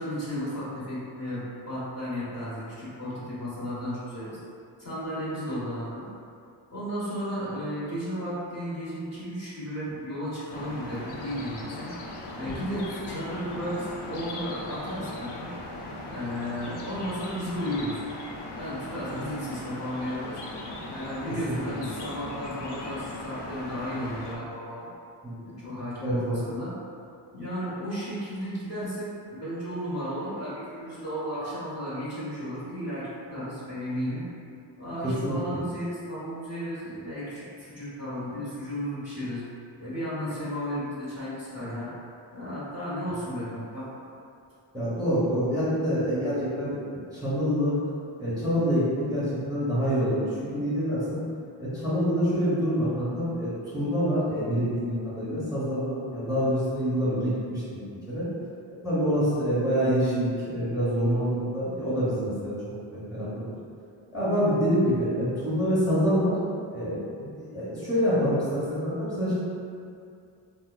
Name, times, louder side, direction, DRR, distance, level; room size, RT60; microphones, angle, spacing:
voice 1, 0.0-4.4 4.8-6.1 6.7-11.9 12.3-15.5 16.1-17.9 18.6-20.4 20.9-24.9 25.4-26.7 27.3-34.2 34.8-39.4 39.8-41.9 42.3-43.9, equal, 30° left, -11 dB, 1.3 m, -34 dB
sound 1, 10.5-24.4, left 2 dB, 55° left, 0.5 m, -39 dB
voice 2, 25.2-25.6 26.0-26.4 35.0-35.6 43.3-43.4 44.7-47.8 48.2-51.2 51.6-58.3 58.8-62.5 62.9-63.4 64.1-66.4 66.7-69.3, equal, 10° right, -12 dB, 1.2 m, -26 dB
2.8 x 2.1 x 2.4 m, 2.4 s
cardioid pair, 45°, 48 cm